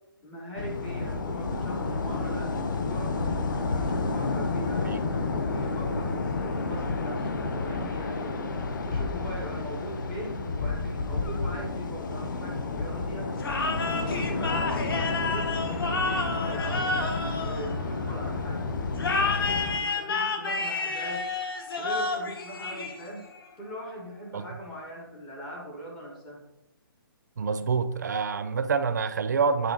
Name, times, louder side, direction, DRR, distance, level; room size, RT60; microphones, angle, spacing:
voice 1, 0.2-4.9 5.3-8.5 8.7-13.3 13.9-18.7 19.1-21.3 21.8-23.3 23.6-26.4, equal, 5° left, -1 dB, 0.4 m, -40 dB
sound 1, 0.6-19.8, left 3 dB, 55° left, 1.0 m, -30 dB
sound 2, 13.4-18.2 19.0-23.4, left 3 dB, 75° left, 1.5 m, -30 dB
voice 2, 27.4-29.7, right 5 dB, 50° right, 12 dB, 0.5 m, -27 dB
8.3 x 3.9 x 5.3 m, 0.92 s
hypercardioid pair, 180°, 12 cm